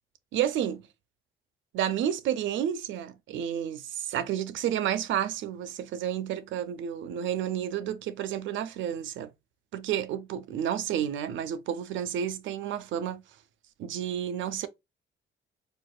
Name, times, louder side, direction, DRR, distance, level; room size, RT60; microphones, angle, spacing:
voice 1, 0.3-0.9 1.7-9.3 9.7-13.2 13.8-14.7, right 10 dB, 75° right, 0.5 m, -31 dB
4.5 x 2.3 x 2.2 m
cardioid pair, 90°, 20 cm